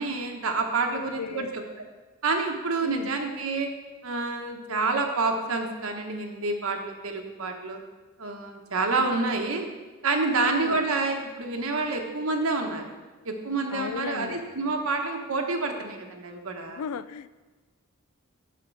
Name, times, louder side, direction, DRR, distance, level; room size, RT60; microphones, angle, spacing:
voice 1, 0.0-1.6 2.2-3.7 4.0-7.8 8.2-9.7 10.0-12.8 13.2-16.8, right 3 dB, 70° right, 3 dB, 1.0 m, -28 dB
voice 2, 0.9-1.5 2.8-3.1 10.3-10.8 13.7-14.4 16.7-17.3, left 7 dB, 80° left, 16 dB, 0.3 m, -36 dB
7.8 x 5.0 x 6.3 m, 1.2 s
head